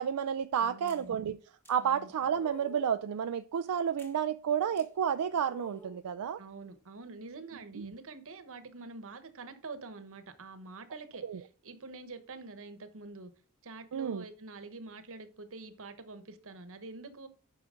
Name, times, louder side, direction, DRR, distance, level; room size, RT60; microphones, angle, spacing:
voice 1, 0.0-1.4 1.7-6.4 7.8-7.9 11.3-11.4 13.9-14.2, right 8 dB, 85° right, 0.4 m, -31 dB
voice 2, 0.6-1.2 1.8-2.1 6.4-13.3 13.6-17.3, right 3 dB, 65° right, 1.1 m, -46 dB
sound 1, 0.9-1.1 1.6-1.8 2.3-2.9 4.0-4.2 4.8-4.9 5.5-6.0, equal, 10° left, 1.5 m, -53 dB
9.0 x 5.9 x 3.8 m
head